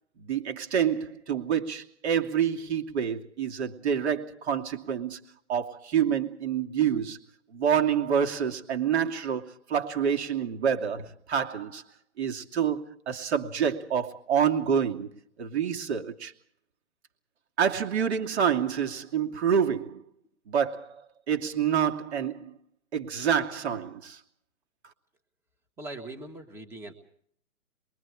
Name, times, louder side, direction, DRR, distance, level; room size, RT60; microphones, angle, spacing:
voice 1, 0.2-5.2 5.5-7.2 7.5-11.8 12.2-15.1 15.4-16.3 17.6-20.0 20.5-21.0 21.3-22.6 22.9-24.2, right 8 dB, 50° right, 2.8 m, -27 dB
voice 2, 25.8-26.9, right 2 dB, 5° right, 1.5 m, -40 dB
28.0 x 23.0 x 4.9 m
hypercardioid pair, 155°, 43 cm